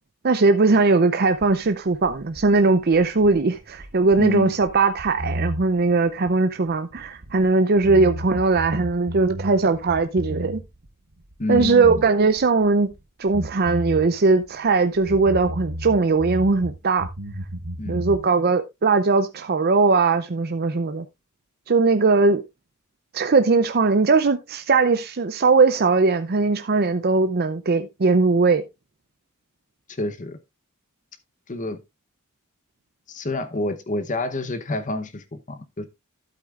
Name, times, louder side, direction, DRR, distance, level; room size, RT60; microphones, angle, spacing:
voice 1, 0.2-10.6 11.5-12.9 13.2-17.1 17.9-21.0 21.7-22.4 23.1-28.6, right 3 dB, 45° right, 0.6 m, -19 dB
sound 1, 1.4-7.5 7.8-10.9 11.1-13.0 13.3-16.7 17.0-18.2, equal, 85° right, 1.4 m, -33 dB
voice 2, 4.2-4.5 11.4-12.0 17.8-18.0 29.9-30.4 31.5-31.8 33.1-35.9, left 2 dB, 35° left, 0.9 m, -28 dB
12.5 x 8.3 x 2.4 m
head